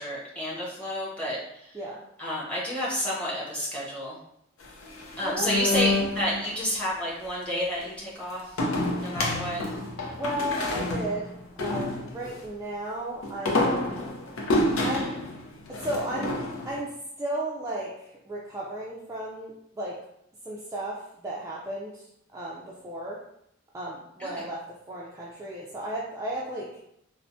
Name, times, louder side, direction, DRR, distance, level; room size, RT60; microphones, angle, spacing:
voice 1, 0.0-1.4 2.2-4.2 5.2-8.4 9.0-9.6 24.2-24.3, equal, 5° left, -7 dB, 0.9 m, -30 dB
sound 1, 4.6-6.5 8.6-12.4 13.2-16.8, left 2 dB, 80° left, 0.5 m, -29 dB
voice 2, 5.2-5.8 10.1-13.9 14.8-15.1 15.7-16.4 16.6-20.0 20.4-23.2 23.7-26.8, right 1 dB, 15° right, -5 dB, 0.3 m, -34 dB
3.3 x 2.0 x 2.5 m, 0.76 s
head